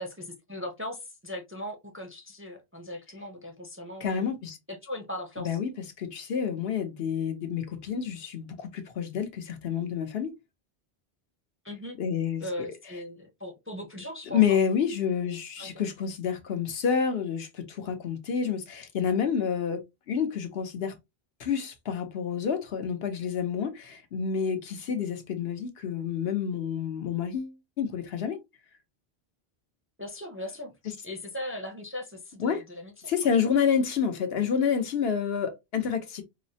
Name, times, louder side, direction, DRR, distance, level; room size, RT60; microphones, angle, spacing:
voice 1, 0.0-4.3 4.7-5.6 11.6-12.0 12.4-14.6 15.3-15.8 30.0-30.7 31.0-33.1, left 1 dB, 15° right, 0.5 m, -39 dB
voice 2, 4.0-4.6 5.4-5.7 6.0-10.3 12.0-12.4 14.3-20.9 21.4-28.4 32.4-32.6 33.1-36.2, left 7 dB, 75° left, 1.0 m, -28 dB
4.7 x 2.1 x 2.7 m
omnidirectional pair, 1.0 m